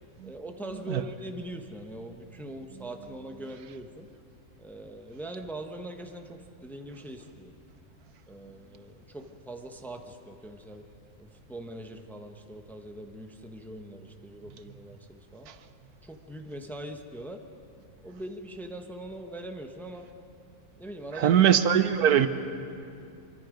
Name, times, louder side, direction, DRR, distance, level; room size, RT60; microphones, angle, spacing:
voice 1, 0.2-4.1 4.6-7.5 8.3-10.9 11.2-15.5 16.0-17.4 18.0-20.1 20.8-21.4, right 1 dB, ahead, 0.9 m, -42 dB
voice 2, 21.2-22.3, right 9 dB, 90° right, 1.4 m, -21 dB
25.5 x 24.0 x 5.2 m
omnidirectional pair, 1.6 m